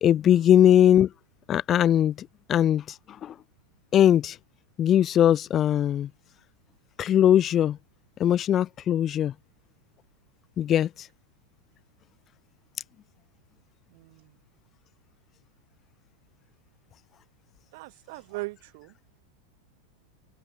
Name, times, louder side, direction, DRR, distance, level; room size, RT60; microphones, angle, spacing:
voice 1, 0.0-1.1 1.5-3.3 3.9-4.4 4.8-6.1 7.0-7.8 8.2-9.3 10.6-11.1, left 10 dB, 30° left, 0.5 m, -21 dB
voice 2, 13.9-14.3 17.7-18.9, right 24 dB, 50° right, 1.4 m, -39 dB
open air
figure-of-eight pair, 90°, 0 cm